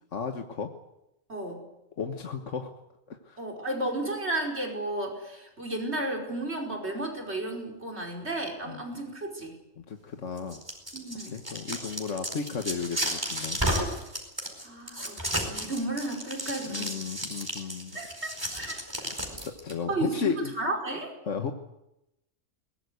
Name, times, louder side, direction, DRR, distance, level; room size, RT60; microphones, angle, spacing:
voice 1, 0.1-0.7 2.0-2.7 3.1-3.4 8.7-8.8 9.8-10.6 11.3-13.6 16.7-18.0 18.9-20.5 21.3-21.5, left 6 dB, 65° left, 5 dB, 1.7 m, -34 dB
voice 2, 1.3-1.6 3.4-9.6 10.9-11.4 14.6-17.0 17.9-18.8 19.9-21.1, right 2 dB, 55° right, 3 dB, 5.4 m, -33 dB
sound 1, 10.4-19.7, equal, 15° right, 4.6 m, -33 dB
22.0 x 20.5 x 8.1 m, 0.89 s
omnidirectional pair, 1.3 m